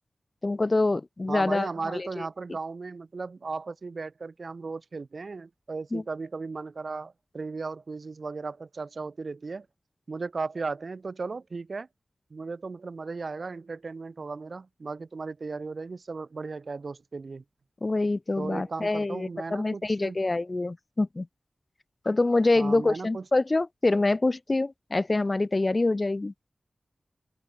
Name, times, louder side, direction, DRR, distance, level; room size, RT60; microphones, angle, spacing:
voice 1, 0.4-1.7 1.9-2.2 5.9-6.0 17.8-21.3 22.0-26.3, left 2 dB, 35° left, 1.1 m, -25 dB
voice 2, 1.3-9.7 10.1-11.9 12.3-17.4 18.4-20.2 22.5-23.2, right 4 dB, 60° right, 3.2 m, -36 dB
open air
wide cardioid pair, 100°, 0 cm